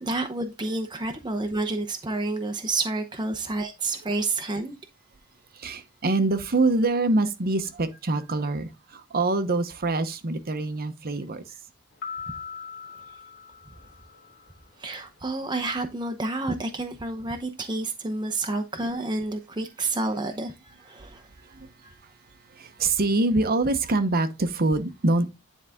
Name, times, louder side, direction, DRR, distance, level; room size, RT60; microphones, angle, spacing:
voice 1, 0.0-4.8 12.3-12.4 14.8-21.3 21.8-21.9, right 2 dB, 20° right, 0.8 m, -29 dB
voice 2, 5.6-11.4 21.5-21.7 22.6-25.3, right 2 dB, 45° right, 0.9 m, -25 dB
sound 1, 12.0-14.5, left 6 dB, 50° left, 1.4 m, -40 dB
9.9 x 4.0 x 3.5 m
head